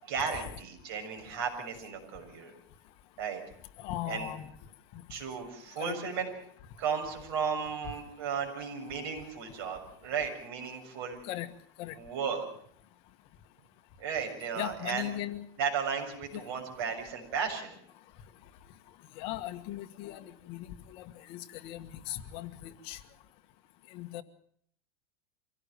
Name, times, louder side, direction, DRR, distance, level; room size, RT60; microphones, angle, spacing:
voice 1, 0.0-2.5 3.2-3.4 4.1-4.3 5.1-6.3 6.8-11.2 12.0-12.4 14.0-15.1 15.6-17.8, right 6 dB, 70° right, 4 dB, 6.9 m, -34 dB
voice 2, 3.8-4.5 4.9-5.0 5.8-5.9 11.2-11.5 11.8-11.9 14.5-15.4 16.3-16.4 19.1-23.0 23.9-24.2, left 13 dB, 45° left, 10 dB, 1.5 m, -38 dB
25.0 x 17.0 x 6.9 m, 0.64 s
supercardioid pair, 165°, 13 cm